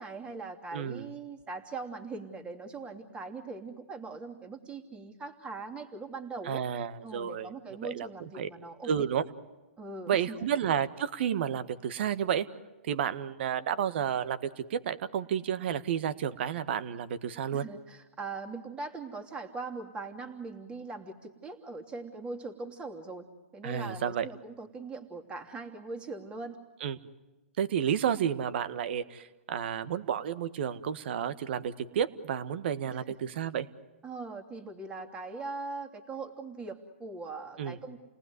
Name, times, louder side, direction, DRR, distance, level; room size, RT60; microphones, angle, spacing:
voice 1, 0.0-6.6 7.0-9.0 9.8-10.4 17.5-23.3 23.5-26.6 32.9-33.1 34.0-38.0, right 3 dB, 15° right, 4 dB, 3.0 m, -41 dB
voice 2, 0.7-1.1 6.4-7.5 7.8-8.1 8.3-8.5 8.8-9.2 10.1-12.4 12.8-17.6 23.6-24.3 26.8-27.0 27.6-33.7 37.6-37.8, right 8 dB, 55° right, 13 dB, 1.6 m, -31 dB
30.0 x 19.0 x 9.6 m, 1.1 s
hypercardioid pair, 135°, 7 cm